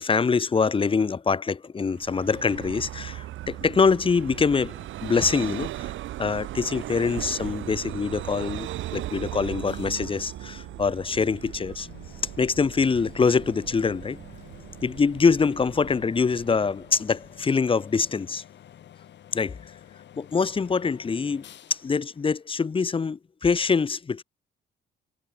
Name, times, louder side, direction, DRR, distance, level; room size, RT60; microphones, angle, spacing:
voice 1, 0.0-5.9 6.2-11.9 12.4-14.2 14.8-18.4 19.3-19.5 20.2-21.4 21.7-24.2, left 5 dB, 25° left, 0.8 m, -24 dB
Vehicle, 1.9-17.3, right 14 dB, 75° right, 0.8 m, -38 dB
sound 1, 9.7-23.2, left 10 dB, 65° left, 1.8 m, -50 dB
cardioid pair, 90°, 20 cm